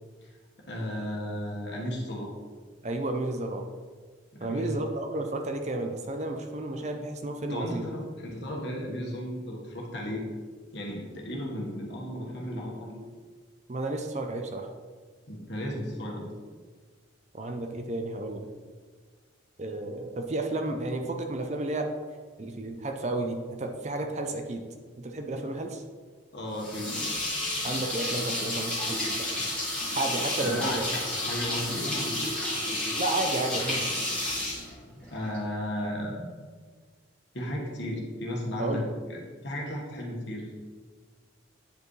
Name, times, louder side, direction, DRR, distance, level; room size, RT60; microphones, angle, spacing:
voice 1, 0.7-2.3 4.3-4.8 7.5-10.3 10.7-13.1 15.3-16.3 26.3-27.0 30.4-32.9 35.1-36.3 37.3-40.5, left 1 dB, 55° left, -2 dB, 1.5 m, -35 dB
voice 2, 2.8-3.7 4.4-7.9 13.7-14.7 17.3-18.5 19.6-21.9 22.4-24.6 25.0-25.8 27.6-29.3 29.9-30.9 33.0-33.9 38.6-38.8, right 2 dB, 35° right, 4 dB, 0.5 m, -32 dB
sound 1, 26.6-35.4, left 1 dB, 5° left, 1.9 m, -31 dB
9.2 x 5.0 x 3.2 m, 1.5 s
head